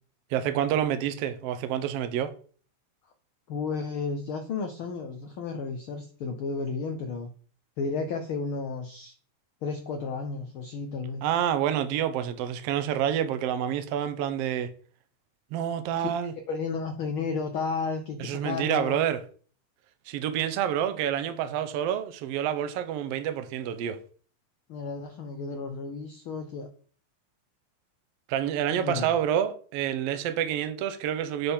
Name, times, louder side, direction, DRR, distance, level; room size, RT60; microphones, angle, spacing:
voice 1, 0.3-2.3 11.2-14.7 15.5-16.3 18.2-19.2 20.1-24.0 28.3-31.5, right 10 dB, 70° right, 1.5 m, -28 dB
voice 2, 3.5-7.3 7.8-9.1 9.6-11.2 16.0-16.1 16.5-19.0 24.7-26.7 28.7-29.1, left 4 dB, 85° left, 1.1 m, -32 dB
9.9 x 3.7 x 4.4 m
omnidirectional pair, 3.4 m